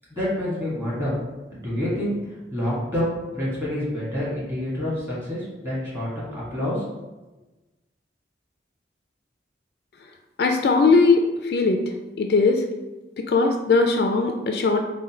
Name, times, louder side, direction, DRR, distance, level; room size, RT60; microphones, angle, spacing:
voice 1, 0.1-1.2 1.5-2.1 2.5-6.8, left 1 dB, 15° right, -9 dB, 1.5 m, -27 dB
voice 2, 10.4-11.8 12.2-12.6 13.2-14.8, left 3 dB, 60° left, 4 dB, 0.3 m, -19 dB
3.8 x 2.2 x 4.2 m, 1.1 s
head